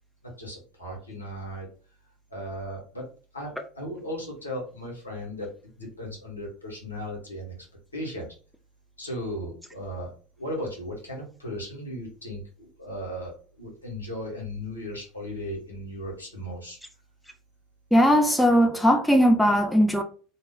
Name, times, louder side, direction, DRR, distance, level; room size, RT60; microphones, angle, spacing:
voice 1, 0.2-1.7 2.3-3.1 3.3-5.5 5.8-7.5 7.9-8.2 9.0-16.8, equal, 90° left, 0.9 m, -36 dB
voice 2, 17.9-20.0, equal, ahead, 0.5 m, -19 dB
2.3 x 2.1 x 3.5 m
figure-of-eight pair, 75°, 0 cm